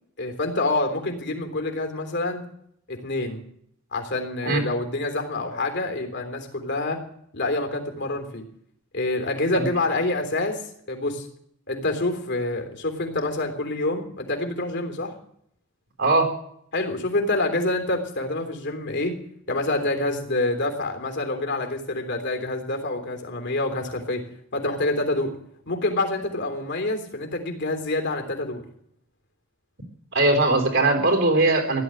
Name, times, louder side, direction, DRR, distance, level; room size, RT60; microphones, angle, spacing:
voice 1, 0.2-2.4 2.9-3.4 3.9-7.0 7.3-8.4 8.9-10.6 10.9-11.3 11.7-15.1 16.7-19.1 19.5-24.2 24.5-25.3 25.7-28.6, left 2 dB, 55° left, 5 dB, 3.4 m, -27 dB
voice 2, 16.0-16.3 30.1-31.8, right 2 dB, 65° right, 4 dB, 3.9 m, -20 dB
16.0 x 11.5 x 7.9 m, 0.69 s
head